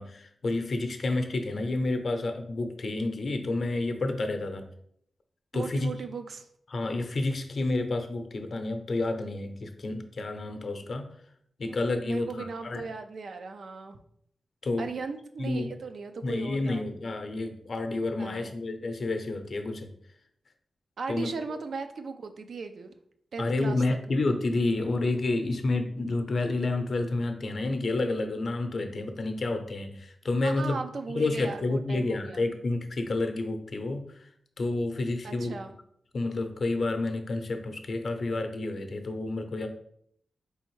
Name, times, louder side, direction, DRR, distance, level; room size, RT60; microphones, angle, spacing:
voice 1, 0.0-4.7 5.5-5.9 6.7-11.1 11.6-12.8 14.6-14.9 15.4-15.8 16.2-19.9 21.1-21.3 23.4-30.8 31.1-34.3 34.6-35.5 36.1-39.7, left 2 dB, 60° left, 6 dB, 0.6 m, -29 dB
voice 2, 5.5-6.5 11.6-14.0 14.8-16.9 18.2-18.5 21.0-22.9 23.3-23.8 30.4-32.4 35.2-35.7, right 4 dB, 75° right, 7 dB, 0.4 m, -37 dB
4.2 x 3.4 x 3.1 m, 0.67 s
cardioid pair, 65°, 0 cm